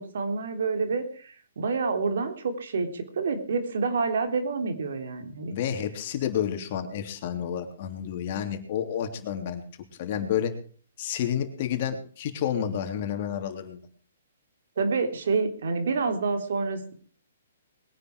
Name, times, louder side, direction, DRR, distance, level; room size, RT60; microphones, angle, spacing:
voice 1, 0.0-5.6 14.8-16.9, right 4 dB, 70° right, 7 dB, 3.5 m, -28 dB
voice 2, 5.5-9.6 10.0-10.5 11.0-13.8, left 9 dB, 45° left, 6 dB, 3.1 m, -30 dB
21.5 x 10.0 x 4.7 m, 0.43 s
hypercardioid pair, 145°, 0 cm